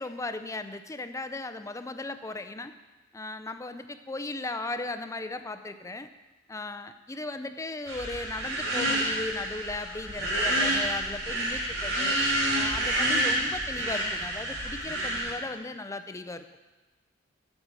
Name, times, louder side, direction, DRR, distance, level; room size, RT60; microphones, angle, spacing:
voice 1, 0.0-2.7 3.1-6.1 6.5-12.2 12.5-16.4, left 2 dB, 15° left, 10 dB, 0.4 m, -36 dB
sound 1, 7.9-15.3, right 1 dB, 90° right, 3.4 m, -28 dB
8.9 x 6.2 x 7.9 m, 1.2 s
head